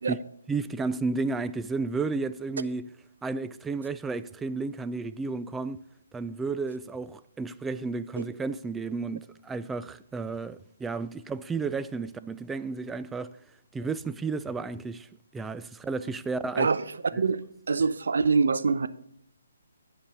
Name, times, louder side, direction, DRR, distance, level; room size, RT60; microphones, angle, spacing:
voice 1, 0.5-2.9 3.2-5.8 6.1-13.3 13.7-15.1 15.3-16.7, right 4 dB, 5° right, 0.3 m, -32 dB
voice 2, 16.6-18.9, right 4 dB, 70° right, 0.6 m, -25 dB
10.0 x 5.2 x 6.1 m
hypercardioid pair, 155°, 0 cm